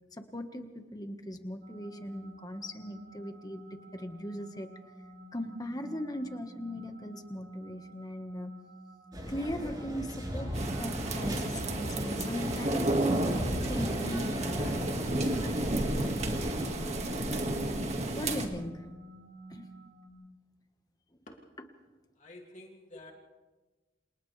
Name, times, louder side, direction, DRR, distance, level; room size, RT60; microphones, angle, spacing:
voice 1, 0.1-3.6 3.9-4.7 5.3-8.5 9.3-13.2 13.6-18.8 19.5-19.7 21.1-21.2, equal, 20° left, 6 dB, 1.5 m, -39 dB
sound 1, 1.6-20.1, right 1 dB, 90° right, 4.5 m, -51 dB
sound 2, 9.1-16.7, equal, 25° right, 7.4 m, -39 dB
sound 3, 10.5-18.5, right 1 dB, 40° right, 1.9 m, -31 dB
voice 2, 22.2-23.1, left 1 dB, 40° left, 1 dB, 2.6 m, -50 dB
29.5 x 27.0 x 3.4 m, 1.2 s
head